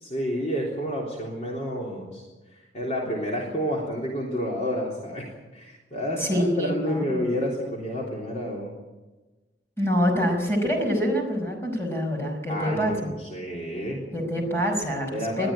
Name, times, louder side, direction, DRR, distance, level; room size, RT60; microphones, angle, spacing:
voice 1, 0.0-2.3 2.7-8.7 12.5-14.0 15.1-15.5, equal, 40° left, -2 dB, 3.6 m, -30 dB
voice 2, 6.2-7.2 9.8-13.1 14.1-15.1 15.4-15.5, equal, 15° left, 1 dB, 5.5 m, -25 dB
21.5 x 13.5 x 8.9 m, 1.2 s
head